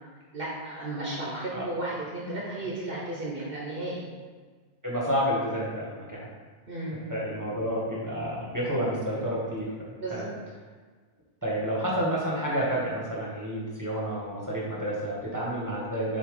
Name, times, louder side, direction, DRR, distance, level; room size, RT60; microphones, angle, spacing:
voice 1, 0.3-4.1 6.7-7.0 10.0-10.3, right 2 dB, 55° right, -5 dB, 1.3 m, -34 dB
voice 2, 4.8-6.3 7.1-10.3 11.4-16.2, equal, 15° right, -5 dB, 1.5 m, -30 dB
6.9 x 3.1 x 4.9 m, 1.5 s
omnidirectional pair, 1.2 m